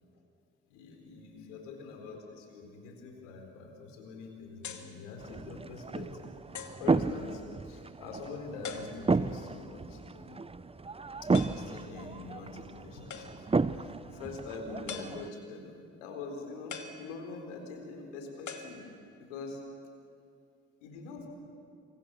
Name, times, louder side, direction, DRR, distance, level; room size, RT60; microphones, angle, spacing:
voice 1, 0.7-6.3 6.6-10.3 11.2-13.3 13.7-18.9 19.2-19.6 20.8-21.3, left 3 dB, 85° left, 3 dB, 4.4 m, -44 dB
sound 1, 4.6-5.0 5.7-5.8 6.5-6.9 8.6-9.3 11.3-11.8 13.1-13.6 14.9-15.6 16.7-17.6 18.5-19.3, left 6 dB, 50° left, 2.5 m, -44 dB
sound 2, 5.2-15.3, right 4 dB, 15° right, 0.7 m, -33 dB
27.0 x 24.5 x 6.9 m, 2.5 s
hypercardioid pair, 60°, 36 cm